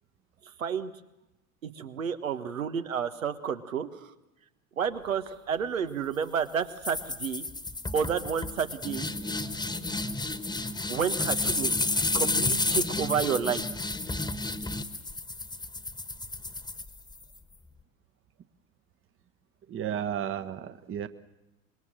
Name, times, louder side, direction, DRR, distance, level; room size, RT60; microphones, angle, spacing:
voice 1, 0.6-0.9 1.6-4.1 4.8-7.4 7.9-9.1 10.9-11.8 12.1-13.7, right 7 dB, 85° right, 9 dB, 1.5 m, -30 dB
sound 1, 6.8-17.4, left 2 dB, 10° left, 1.5 m, -31 dB
voice 2, 19.7-21.1, right 9 dB, 30° right, 11 dB, 1.2 m, -33 dB
25.5 x 21.5 x 7.6 m, 0.93 s
hypercardioid pair, 75°, 39 cm